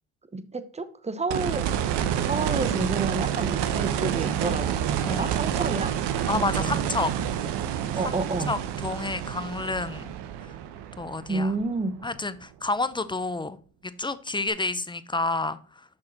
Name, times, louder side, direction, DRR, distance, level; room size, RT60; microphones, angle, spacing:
voice 1, 0.3-5.9 6.3-7.0 7.9-8.5 11.3-11.9, right 3 dB, 15° right, 12 dB, 0.9 m, -30 dB
sound 1, 1.3-12.2 14.5-14.6, right 10 dB, 60° right, 1.0 m, -28 dB
voice 2, 5.0-5.3 6.3-7.1 8.0-8.1 8.5-10.1 10.4-10.5 11.0-11.5 12.0-13.6 14.0-15.6, left 3 dB, 10° left, 14 dB, 0.5 m, -29 dB
6.3 x 6.1 x 4.1 m, 0.39 s
hypercardioid pair, 65°, 46 cm